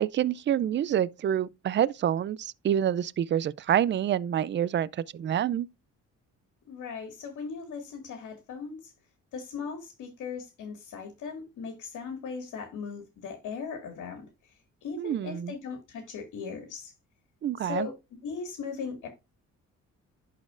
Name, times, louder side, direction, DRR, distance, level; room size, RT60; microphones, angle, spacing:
voice 1, 0.0-5.7 15.0-15.5 17.4-17.9, right 10 dB, 40° right, 0.4 m, -27 dB
voice 2, 6.7-8.9 9.3-14.3 14.8-16.9 17.6-17.9 18.2-19.1, left 5 dB, 80° left, 2.0 m, -38 dB
11.0 x 4.2 x 2.5 m
cardioid pair, 90°, 30 cm